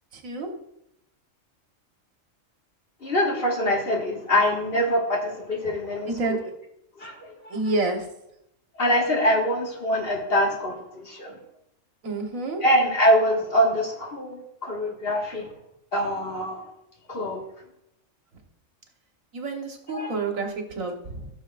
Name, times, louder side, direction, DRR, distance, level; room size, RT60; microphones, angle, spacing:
voice 1, 0.1-0.5 6.1-6.4 7.5-8.1 12.0-12.6 19.3-21.3, right 3 dB, 90° right, 3 dB, 1.7 m, -29 dB
voice 2, 3.0-6.4 7.0-7.3 8.8-11.3 12.6-15.4 15.9-16.6 17.1-17.4 19.9-20.1, equal, 50° left, -2 dB, 1.9 m, -24 dB
14.0 x 6.6 x 2.4 m, 0.81 s
omnidirectional pair, 1.4 m